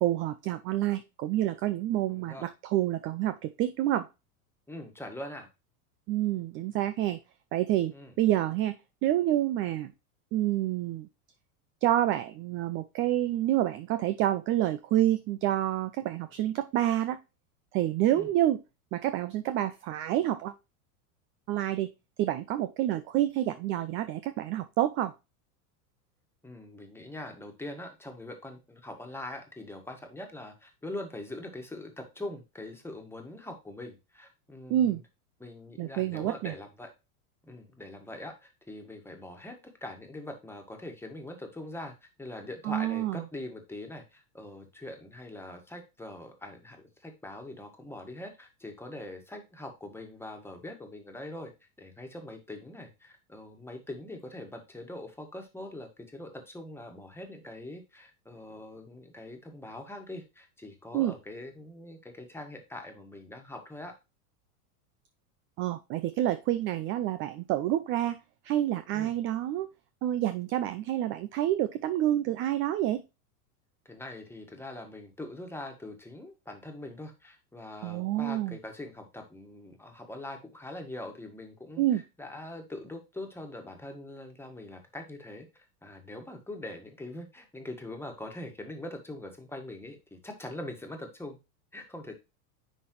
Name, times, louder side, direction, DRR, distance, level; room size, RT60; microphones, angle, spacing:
voice 1, 0.0-4.1 6.1-7.2 7.5-8.8 9.0-9.9 10.3-11.1 11.8-17.2 17.7-18.6 18.9-20.5 21.5-21.9 22.2-25.1 34.7-35.0 35.8-36.5 42.6-43.2 60.9-61.1 65.6-68.2 68.4-69.7 70.0-73.0 77.8-78.6 81.8-82.0, right 13 dB, 30° right, 11 dB, 0.3 m, -28 dB
voice 2, 2.1-2.5 4.7-5.5 7.9-8.1 18.1-18.3 26.4-35.0 35.4-36.9 37.4-51.5 51.8-63.9 68.9-69.1 73.9-91.4 91.7-92.1, left 1 dB, 5° left, 4 dB, 1.6 m, -43 dB
10.0 x 3.9 x 3.1 m, 0.26 s
hypercardioid pair, 110°, 47 cm